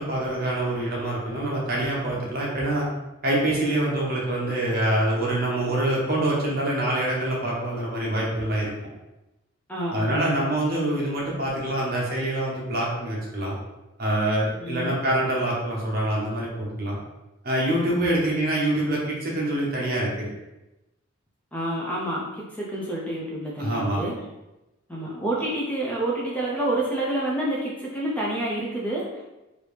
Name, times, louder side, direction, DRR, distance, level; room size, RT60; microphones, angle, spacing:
voice 1, 0.0-2.9 3.2-8.7 9.9-13.6 14.0-17.0 17.4-20.3 23.6-24.0, right 1 dB, 45° right, -4 dB, 0.9 m, -25 dB
voice 2, 9.7-10.5 14.6-15.0 18.1-18.3 21.5-24.1 24.9-29.2, right 1 dB, 5° left, -5 dB, 0.5 m, -28 dB
3.2 x 2.6 x 3.3 m, 0.98 s
head